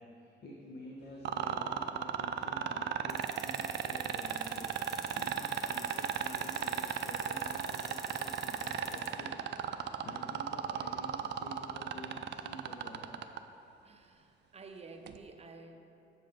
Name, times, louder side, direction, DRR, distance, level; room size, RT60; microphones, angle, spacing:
voice 1, 0.0-13.2, equal, 55° left, -3 dB, 1.0 m, -49 dB
sound 1, 1.2-13.4 15.1-15.2, right 9 dB, 60° right, 0.4 m, -34 dB
sound 2, 3.1-9.1, right 1 dB, ahead, 1.0 m, -47 dB
voice 2, 13.8-15.8, right 3 dB, 30° right, 4 dB, 0.7 m, -51 dB
7.6 x 5.5 x 5.1 m, 2.7 s
cardioid pair, 90°, 20 cm